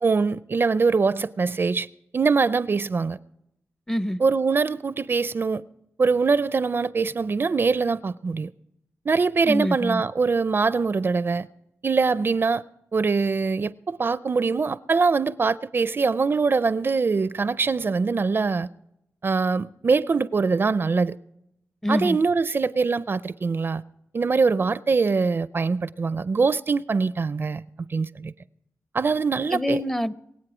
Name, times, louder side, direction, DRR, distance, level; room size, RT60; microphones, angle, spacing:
voice 1, 0.0-1.9 2.1-3.2 4.2-5.6 6.0-8.5 9.1-11.5 11.8-12.6 12.9-18.7 19.2-21.2 21.9-23.8 24.1-28.3 28.9-29.8, right 4 dB, 45° right, 0.4 m, -23 dB
voice 2, 3.9-4.2 9.4-10.0 21.8-22.2 29.5-30.1, equal, 10° left, 0.5 m, -25 dB
23.0 x 8.1 x 4.9 m
wide cardioid pair, 90°, 5 cm